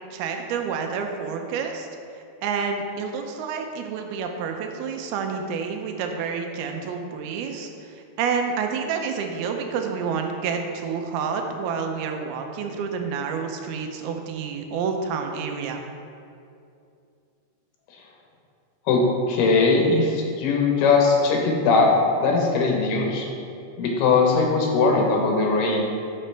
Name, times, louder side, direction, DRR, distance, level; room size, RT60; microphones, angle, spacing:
voice 1, 0.1-1.9 2.4-15.8, right 6 dB, 75° right, 4 dB, 2.5 m, -29 dB
voice 2, 18.9-21.9 22.2-23.3 23.8-26.0, left 3 dB, 75° left, 0 dB, 2.9 m, -20 dB
12.5 x 5.5 x 3.3 m, 2.5 s
omnidirectional pair, 4.8 m